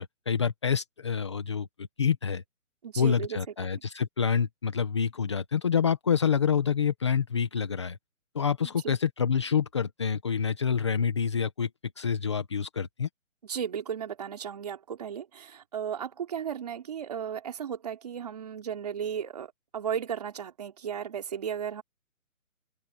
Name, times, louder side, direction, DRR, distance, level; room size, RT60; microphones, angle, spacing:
voice 1, 0.0-1.7 2.0-2.4 3.0-8.0 8.3-11.7 12.0-13.1, left 7 dB, 20° left, 1.4 m, -27 dB
voice 2, 2.8-3.4 8.6-8.9 13.4-21.8, right 8 dB, 30° right, 3.6 m, -35 dB
open air
hypercardioid pair, 180°, 42 cm